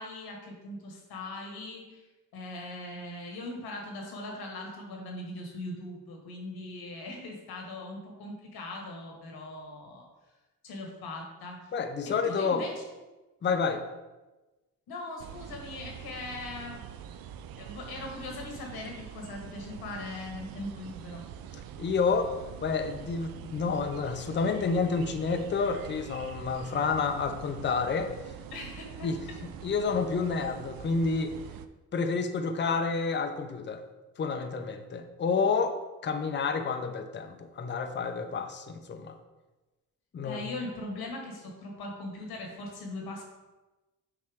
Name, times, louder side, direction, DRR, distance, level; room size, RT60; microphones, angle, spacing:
voice 1, 0.0-2.0 2.3-10.1 10.6-11.7 12.0-12.7 14.9-16.8 17.6-21.2 28.5-29.1 40.2-43.2, left 2 dB, 80° left, 1 dB, 1.6 m, -40 dB
voice 2, 11.7-12.6 13.4-13.8 21.8-22.3 22.6-28.1 29.0-29.2 29.6-31.3 31.9-33.8 34.2-35.8 36.0-39.2 40.1-40.4, left 5 dB, 30° left, 7 dB, 0.6 m, -29 dB
sound 1, 15.2-31.7, right 9 dB, 70° right, 0.5 m, -44 dB
6.6 x 4.4 x 3.5 m, 1.1 s
cardioid pair, 85°, 37 cm